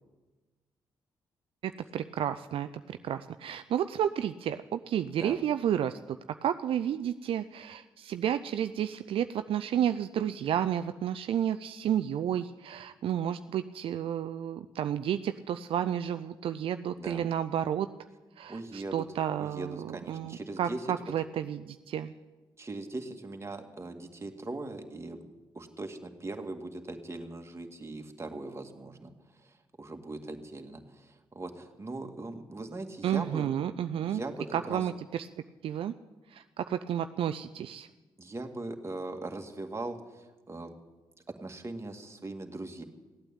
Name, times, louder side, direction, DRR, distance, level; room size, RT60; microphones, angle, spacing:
voice 1, 1.6-17.9 18.4-22.1 33.0-34.2 34.5-35.3 35.6-35.9 36.3-37.9, right 10 dB, 70° right, 10 dB, 0.5 m, -31 dB
voice 2, 18.5-19.0 19.4-20.8 22.6-29.1 29.4-33.5 34.1-34.8 38.2-40.7 41.4-42.8, right 2 dB, 30° right, 4 dB, 2.0 m, -40 dB
16.0 x 8.9 x 8.9 m, 1.2 s
supercardioid pair, 50°, 10 cm